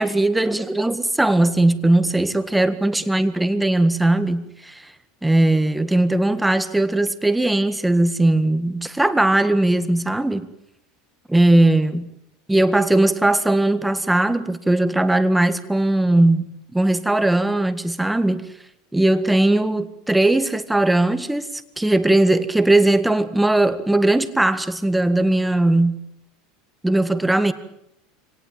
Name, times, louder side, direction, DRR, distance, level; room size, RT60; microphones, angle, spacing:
voice 1, 0.0-4.9 5.2-10.5 11.3-12.0 12.5-18.5 18.9-26.0 26.8-27.5, right 2 dB, 5° right, 1.7 m, -19 dB
25.0 x 18.0 x 8.8 m
supercardioid pair, 110°, 0 cm